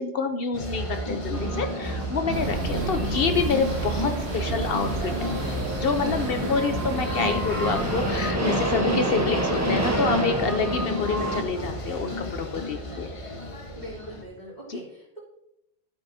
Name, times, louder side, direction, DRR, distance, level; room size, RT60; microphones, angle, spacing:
voice 1, 0.0-5.3 5.7-13.1 14.7-14.8, left 5 dB, 60° left, 7 dB, 0.8 m, -27 dB
sound 1, 0.5-14.2, left 1 dB, 30° left, 1.1 m, -32 dB
sound 2, 1.3-11.4, right 1 dB, 15° right, 1.0 m, -30 dB
sound 3, 2.3-8.3, right 4 dB, 75° right, 1.2 m, -33 dB
voice 2, 6.3-6.7 12.7-13.2 13.7-15.2, right 1 dB, 40° right, -6 dB, 3.1 m, -42 dB
12.0 x 8.4 x 2.7 m, 0.81 s
omnidirectional pair, 1.1 m